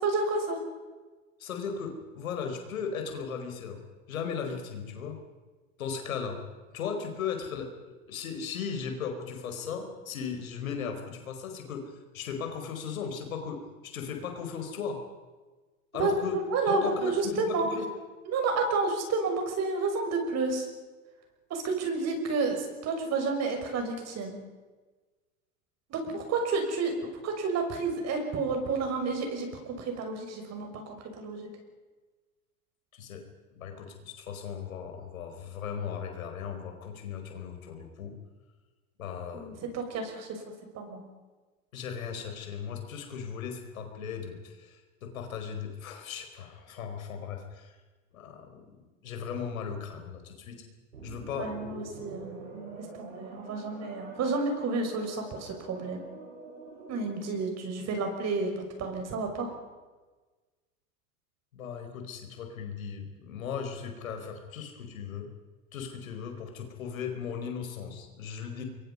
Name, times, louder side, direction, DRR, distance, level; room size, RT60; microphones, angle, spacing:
voice 1, 0.0-0.6 16.0-17.7 18.3-20.7 21.5-24.3 25.9-26.9 27.2-31.5 39.3-40.4 40.7-41.0 51.3-56.0 56.9-59.5, right 3 dB, 40° right, 4 dB, 6.3 m, -30 dB
voice 2, 1.4-3.8 4.1-5.2 5.8-6.4 6.7-7.7 8.1-15.0 15.9-16.4 16.7-17.8 32.9-33.2 33.5-38.2 39.0-39.6 41.7-47.8 48.1-48.6 49.0-50.6 51.0-51.5 61.5-65.3 65.7-68.6, left 6 dB, 80° left, 5 dB, 4.8 m, -37 dB
sound 1, 50.9-57.4, right 3 dB, 90° right, 7.2 m, -46 dB
26.5 x 23.0 x 5.5 m, 1.3 s
hypercardioid pair, 100°, 41 cm